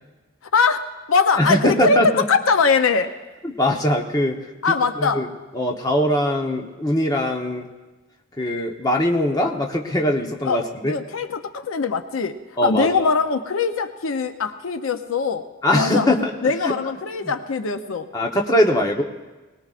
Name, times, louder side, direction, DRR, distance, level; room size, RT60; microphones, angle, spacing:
voice 1, 0.5-3.1 4.6-5.2 10.5-10.6 10.9-15.4 15.7-16.1 16.4-18.1, left 4 dB, 80° left, 8 dB, 0.6 m, -21 dB
voice 2, 1.3-2.2 3.4-4.4 4.7-5.3 5.5-7.7 8.4-10.9 12.6-13.1 15.6-16.7 17.2-17.3 18.1-19.0, left 1 dB, 20° left, 1 dB, 1.0 m, -21 dB
22.0 x 19.0 x 2.5 m, 1.2 s
head